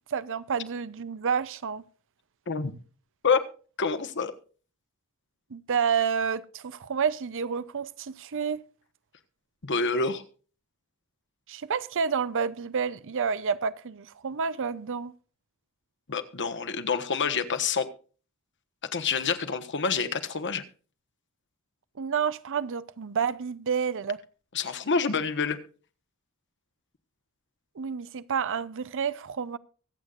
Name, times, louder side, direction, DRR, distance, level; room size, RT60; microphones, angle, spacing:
voice 1, 0.1-1.8 5.5-8.6 11.5-15.1 22.0-24.2 27.8-29.6, right 6 dB, 60° right, 0.6 m, -29 dB
voice 2, 3.8-4.3 9.6-10.2 16.1-17.9 18.9-20.6 24.5-25.6, left 5 dB, 55° left, 1.2 m, -27 dB
24.0 x 8.2 x 2.5 m
head